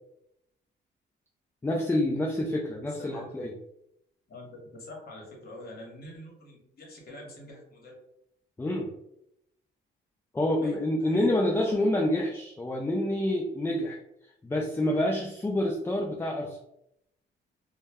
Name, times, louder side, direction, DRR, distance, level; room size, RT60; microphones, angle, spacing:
voice 1, 1.6-3.5 8.6-8.9 10.3-14.0 14.4-16.6, left 1 dB, 10° left, 1 dB, 0.3 m, -27 dB
voice 2, 2.9-3.3 4.3-8.0 10.6-11.7, left 1 dB, 50° left, -1 dB, 1.0 m, -45 dB
2.2 x 2.1 x 3.3 m, 0.79 s
cardioid pair, 90°, 20 cm